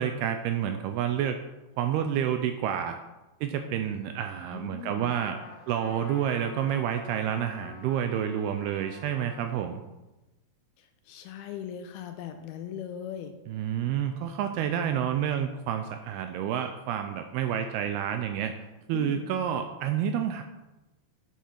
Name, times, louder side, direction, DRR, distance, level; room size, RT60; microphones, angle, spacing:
voice 1, 0.0-1.4 1.8-3.0 3.4-5.4 5.7-9.8 13.5-18.5 18.9-20.4, right 9 dB, 80° right, 7 dB, 2.3 m, -29 dB
voice 2, 4.5-5.1 10.8-13.3 18.9-19.3, left 9 dB, 90° left, 6 dB, 2.3 m, -39 dB
Trumpet, 5.0-9.7, left 6 dB, 70° left, 3.2 m, -48 dB
9.3 x 8.3 x 5.9 m, 1.1 s
omnidirectional pair, 5.1 m